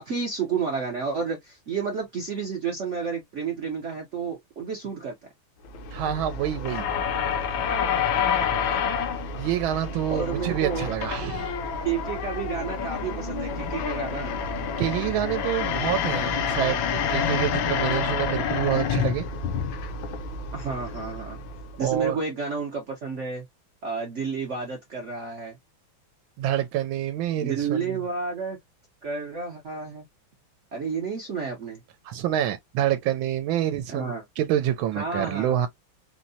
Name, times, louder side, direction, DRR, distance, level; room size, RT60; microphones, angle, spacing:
voice 1, 0.0-5.1 10.1-10.9 11.2-11.3 11.8-14.3 20.5-21.4 21.8-23.4 23.8-25.6 27.4-28.6 29.0-30.0 30.7-31.8 33.9-34.2 35.0-35.7, right 5 dB, 60° right, 0.8 m, -31 dB
sound 1, 5.6-22.0, left 6 dB, 75° left, 1.4 m, -28 dB
voice 2, 5.9-6.9 9.4-11.5 14.8-19.2 21.8-22.2 26.4-28.0 32.0-35.7, right 11 dB, 85° right, 1.4 m, -27 dB
4.4 x 2.1 x 2.6 m
omnidirectional pair, 2.2 m